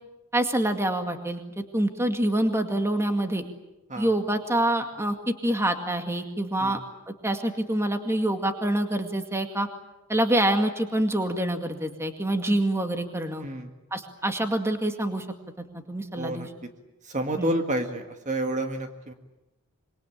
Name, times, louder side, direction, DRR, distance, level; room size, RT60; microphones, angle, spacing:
voice 1, 0.3-3.4 4.0-6.8 7.1-9.7 10.1-13.4 13.9-15.3 15.6-16.5 17.4-17.5, right 1 dB, 10° right, 6 dB, 2.1 m, -26 dB
voice 2, 13.4-13.7 16.2-16.5 17.0-19.1, right 1 dB, 35° right, 5 dB, 1.9 m, -29 dB
26.0 x 23.5 x 8.8 m, 0.97 s
head